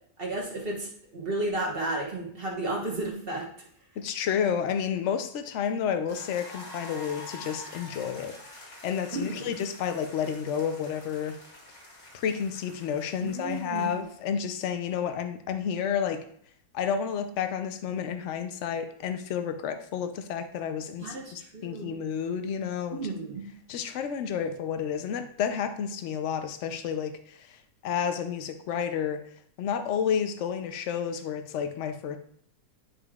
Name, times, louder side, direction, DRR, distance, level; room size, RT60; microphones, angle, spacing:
voice 1, 0.2-3.7 9.1-9.5 13.2-14.0 21.0-21.9 22.9-23.5, right 2 dB, 35° right, -1 dB, 1.2 m, -33 dB
voice 2, 4.0-11.3 12.1-16.2 16.7-23.1 23.7-29.2 29.6-32.2, left 7 dB, 70° left, 8 dB, 0.7 m, -31 dB
sound 1, 6.1-14.2, left 2 dB, 40° left, 1.9 m, -47 dB
9.9 x 5.2 x 2.4 m, 0.64 s
omnidirectional pair, 1.9 m